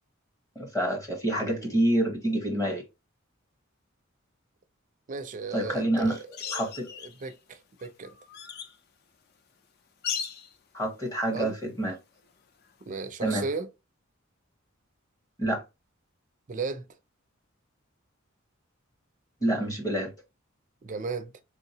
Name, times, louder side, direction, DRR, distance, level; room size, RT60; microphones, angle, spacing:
voice 1, 0.6-2.8 5.5-6.2 6.5-6.9 10.7-11.9 13.2-13.4 15.4-15.6 19.4-20.1, right 1 dB, 15° left, 0.9 m, -27 dB
voice 2, 1.3-1.7 5.1-6.2 7.0-8.2 11.3-11.6 12.9-13.7 16.5-16.9 20.8-21.4, right 4 dB, 40° right, 0.4 m, -35 dB
sound 1, 6.3-7.3 7.8-8.8 10.0-10.5 12.8-12.9, left 7 dB, 50° left, 0.4 m, -36 dB
3.4 x 2.7 x 2.7 m
head